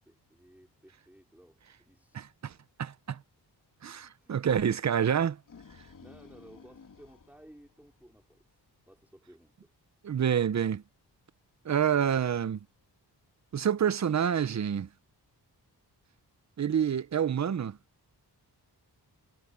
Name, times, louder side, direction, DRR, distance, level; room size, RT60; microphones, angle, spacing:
voice 1, 0.1-2.2 4.2-4.7 6.0-9.7, right 1 dB, 5° right, 4.4 m, -57 dB
voice 2, 2.1-2.5 2.8-3.2 3.8-5.4 10.0-10.8 11.6-12.6 13.5-14.9 16.6-17.8, right 8 dB, 45° right, 0.7 m, -28 dB
sound 1, 5.3-8.4, left 5 dB, 50° left, 2.9 m, -54 dB
wide cardioid pair, 120°, 40 cm